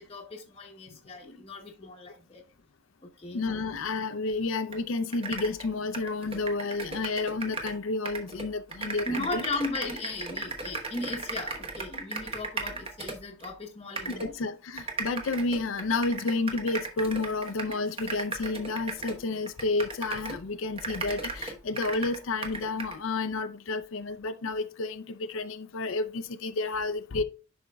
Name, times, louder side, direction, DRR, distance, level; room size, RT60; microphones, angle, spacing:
voice 1, 0.0-2.4 3.0-3.4 9.1-14.3, left 2 dB, 30° left, 0.8 m, -37 dB
voice 2, 3.3-9.1 9.3-9.4 14.1-27.2, left 3 dB, 70° left, 0.5 m, -30 dB
sound 1, 4.7-4.8 5.1-7.8 8.0-13.5 14.0-14.3 14.8-20.4 20.8-23.0, right 3 dB, 30° right, 1.0 m, -37 dB
11.0 x 4.3 x 2.3 m
head